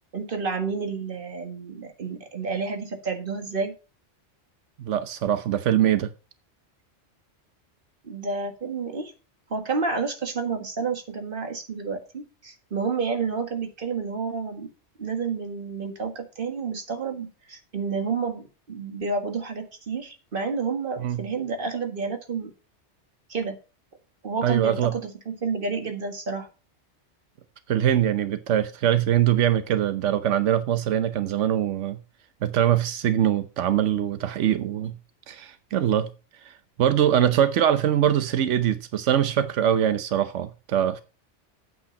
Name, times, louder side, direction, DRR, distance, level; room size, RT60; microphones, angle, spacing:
voice 1, 0.1-3.7 8.0-9.1 9.5-14.7 15.0-22.5 23.3-23.6 24.2-26.5, right 4 dB, 50° right, 1.9 m, -30 dB
voice 2, 4.8-6.1 21.0-21.2 24.4-24.9 27.7-32.0 32.4-35.0 35.3-36.1 36.4-41.0, right 10 dB, 90° right, 1.1 m, -23 dB
8.6 x 7.8 x 5.1 m
omnidirectional pair, 1.2 m